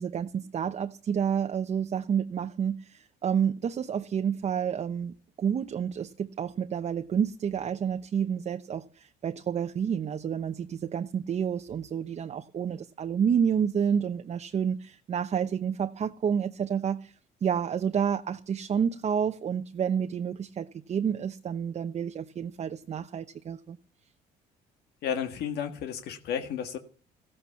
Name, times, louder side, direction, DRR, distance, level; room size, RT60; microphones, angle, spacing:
voice 1, 0.0-17.1 17.4-23.8, right 7 dB, 40° right, 1.0 m, -29 dB
voice 2, 25.0-26.8, left 8 dB, 75° left, 1.8 m, -32 dB
15.5 x 14.5 x 5.8 m
cardioid pair, 110°, 17 cm